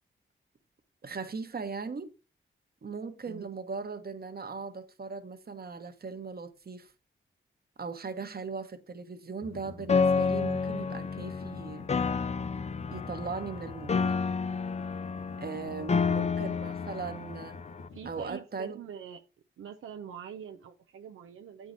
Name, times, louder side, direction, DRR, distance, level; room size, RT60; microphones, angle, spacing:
voice 1, 1.0-2.1 2.8-6.9 7.8-11.9 12.9-14.0 15.4-17.6 18.0-18.8, right 4 dB, 50° right, 1.1 m, -39 dB
voice 2, 3.3-3.6 15.6-16.1 17.9-19.2 19.6-21.7, right 8 dB, 80° right, 0.6 m, -44 dB
sound 1, 9.4-18.3, left 3 dB, 75° left, 1.3 m, -47 dB
Piano, 9.9-17.9, left 5 dB, 35° left, 0.5 m, -30 dB
8.2 x 4.8 x 4.0 m
cardioid pair, 50°, 21 cm